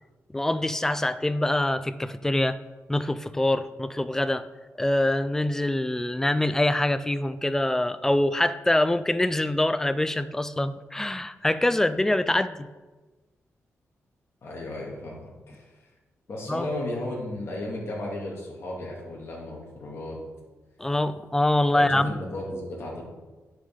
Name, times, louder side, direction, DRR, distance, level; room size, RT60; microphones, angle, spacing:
voice 1, 0.3-2.6 2.9-4.4 4.8-12.7 16.5-16.7 20.8-22.1, left 1 dB, 10° left, 13 dB, 0.4 m, -24 dB
voice 2, 14.4-15.8 16.3-20.2 21.7-23.0, left 1 dB, 50° left, -3 dB, 2.2 m, -34 dB
10.0 x 6.3 x 3.7 m, 1.2 s
wide cardioid pair, 135°, 5 cm